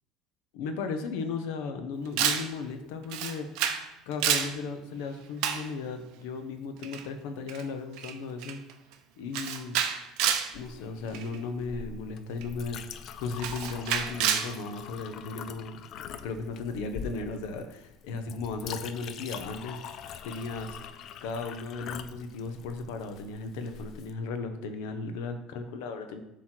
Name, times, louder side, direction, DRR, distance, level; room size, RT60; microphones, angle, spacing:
voice 1, 0.5-3.5 4.1-8.6 9.2-9.8 10.5-12.8 13.2-15.8 16.2-19.8 20.2-20.8 21.2-26.2, left 4 dB, 80° left, 7 dB, 0.8 m, -36 dB
Camera, 2.2-2.5 3.1-3.8 4.1-4.5 5.4-5.7 6.8-7.0 7.5-7.6 8.0-8.1 8.4-8.7 9.3-10.5 11.1-11.4 12.4-12.5 13.4-14.5, right 9 dB, 65° right, 0.6 m, -28 dB
Chink clink, 10.5-24.1, left 8 dB, 45° left, 0.3 m, -43 dB
7.6 x 3.1 x 4.4 m, 0.93 s
cardioid pair, 160°, 0 cm